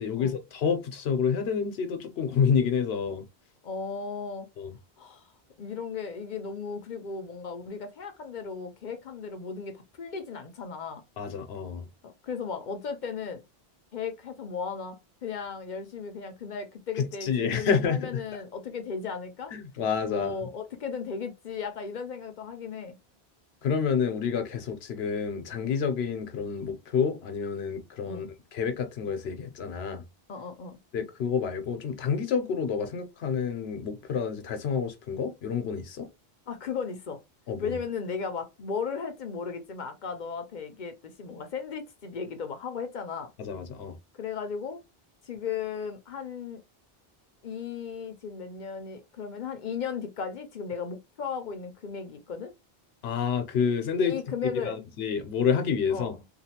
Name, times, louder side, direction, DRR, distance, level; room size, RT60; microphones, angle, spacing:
voice 1, 0.0-3.2 4.6-4.7 11.2-11.9 17.0-18.2 19.5-20.3 23.6-28.3 28.5-30.0 30.9-36.1 37.5-37.8 43.4-44.0 53.0-54.1 54.4-56.1, left 6 dB, 85° left, 0.9 m, -28 dB
voice 2, 3.6-4.5 5.0-5.2 5.6-11.0 12.0-13.4 13.9-19.5 20.1-23.0 28.1-28.3 30.3-30.8 36.5-37.2 37.6-43.3 44.2-44.8 45.2-46.6 47.4-52.5 54.0-54.8 55.9-56.1, left 6 dB, 55° left, 0.6 m, -36 dB
2.9 x 2.3 x 2.8 m
omnidirectional pair, 1.0 m